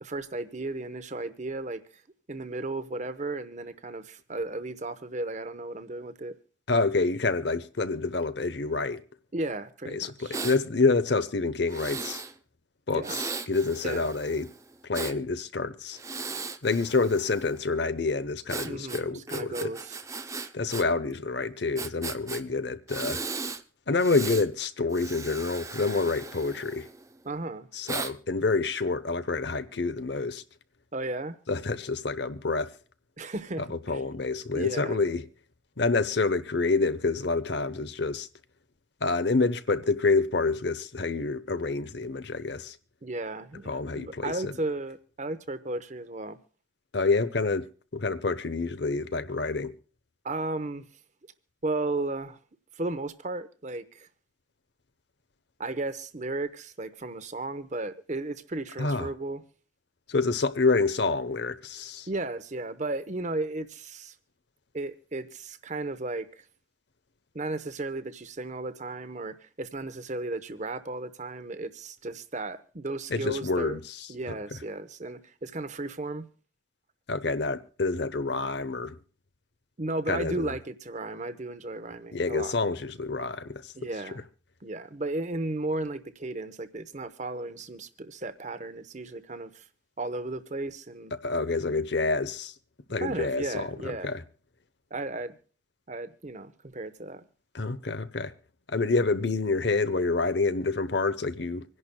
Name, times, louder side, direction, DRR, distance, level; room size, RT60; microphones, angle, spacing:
voice 1, 0.0-2.0 2.3-6.4 9.3-10.3 12.9-13.2 13.8-14.1 18.6-20.0 27.2-27.7 30.9-31.4 33.2-34.0 34.5-35.0 43.0-46.4 50.2-50.9 51.6-52.4 52.8-54.1 55.6-59.4 62.1-64.1 64.7-66.4 67.3-73.8 74.1-76.2 79.8-82.5 83.7-84.2 84.6-89.6 90.0-91.1 92.9-94.2 94.9-95.4 95.9-97.3, right 2 dB, 35° right, 0.9 m, -34 dB
voice 2, 6.7-9.0 9.9-12.2 12.9-14.5 14.8-16.0 16.6-19.7 20.5-23.2 23.9-26.9 27.7-30.4 31.5-32.7 33.7-35.3 35.8-38.3 39.0-42.8 43.7-44.5 46.9-47.7 47.9-49.7 58.8-59.1 60.1-62.1 73.1-74.1 77.1-79.0 80.1-80.6 82.1-83.7 91.2-92.5 92.9-94.2 97.5-98.3 98.7-101.6, left 3 dB, 60° left, 0.9 m, -27 dB
Breathing, 10.3-10.6 11.7-12.3 13.0-15.2 15.9-17.6 18.5-20.8 21.1-21.2 21.8-22.4 22.9-23.6 24.0-24.5 24.9-27.1 27.9-28.1, right 4 dB, 15° right, 0.5 m, -37 dB
26.0 x 11.0 x 2.2 m
head